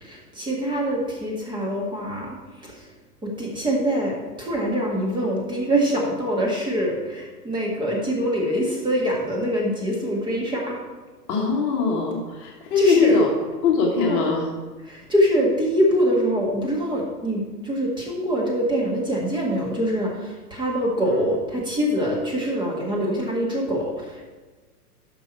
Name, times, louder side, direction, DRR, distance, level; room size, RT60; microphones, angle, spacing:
voice 1, 0.0-2.3 2.6-2.9 3.2-10.8 12.8-13.2 14.0-14.2 14.9-24.2, equal, 10° right, -3 dB, 1.8 m, -24 dB
voice 2, 11.3-13.3 13.6-14.5 21.0-21.3, left 5 dB, 35° left, -1 dB, 1.4 m, -21 dB
11.0 x 6.0 x 4.4 m, 1.3 s
figure-of-eight pair, 105°, 49 cm